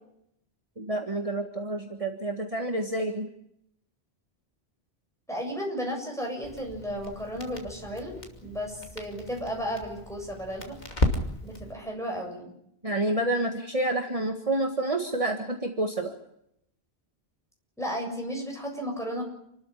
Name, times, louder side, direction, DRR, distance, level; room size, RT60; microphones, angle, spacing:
voice 1, 0.8-3.3 12.8-16.1, right 1 dB, 35° right, 4 dB, 1.9 m, -28 dB
voice 2, 5.3-10.8 11.4-12.5 17.8-19.2, equal, 5° left, 0 dB, 7.4 m, -34 dB
Crackle, 6.4-11.7, left 1 dB, 45° left, 2.9 m, -34 dB
28.5 x 13.5 x 10.0 m, 0.76 s
omnidirectional pair, 1.1 m